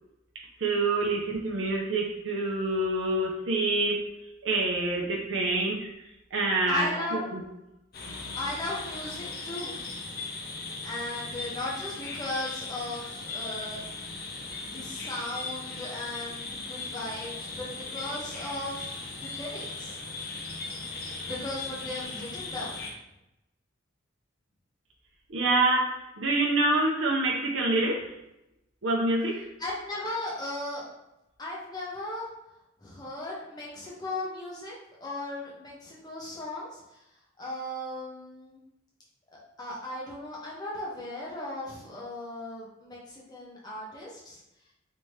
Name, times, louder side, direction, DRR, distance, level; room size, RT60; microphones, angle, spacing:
voice 1, 0.6-4.0 4.4-5.9 6.3-6.9 7.3-7.4 25.3-28.1 28.8-29.4, right 2 dB, 70° right, -2 dB, 0.7 m, -26 dB
voice 2, 6.7-7.3 8.4-9.9 10.8-13.8 14.4-20.0 21.3-22.9 29.6-30.9 31.4-32.3 32.8-37.0 37.4-38.6 39.3-44.4, left 1 dB, 20° left, -5 dB, 0.9 m, -37 dB
sound 1, 7.9-22.9, left 3 dB, 50° left, 0.6 m, -38 dB
3.4 x 2.9 x 3.2 m, 0.87 s
head